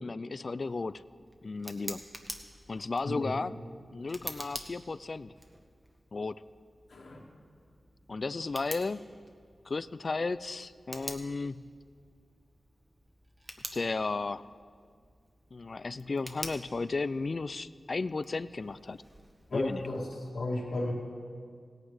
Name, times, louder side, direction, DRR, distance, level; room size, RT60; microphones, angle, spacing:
voice 1, 0.0-1.0 1.4-2.0 2.7-3.5 3.9-5.3 6.1-6.4 8.1-9.1 9.7-11.6 13.7-14.5 15.5-19.0 19.5-19.8, left 3 dB, 55° left, 17 dB, 0.3 m, -34 dB
Tick, 0.6-20.3, right 1 dB, 30° right, 1.3 m, -48 dB
voice 2, 19.5-20.0 20.3-20.9, left 1 dB, 75° left, -2 dB, 2.3 m, -33 dB
17.0 x 8.9 x 4.9 m, 2.1 s
cardioid pair, 50°, 0 cm